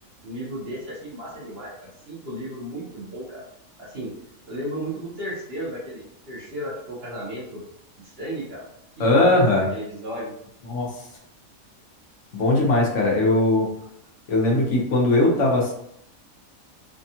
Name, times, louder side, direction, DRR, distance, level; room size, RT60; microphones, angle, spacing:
voice 1, 0.2-3.4 3.8-4.1 4.5-7.6 8.0-8.6 9.0-9.3 9.6-10.3, right 1 dB, 50° right, -7 dB, 1.1 m, -34 dB
voice 2, 9.0-9.7 10.7-10.9 12.3-13.7 14.3-15.7, left 2 dB, 65° left, -2 dB, 1.1 m, -19 dB
3.5 x 2.3 x 2.7 m, 0.73 s
omnidirectional pair, 1.4 m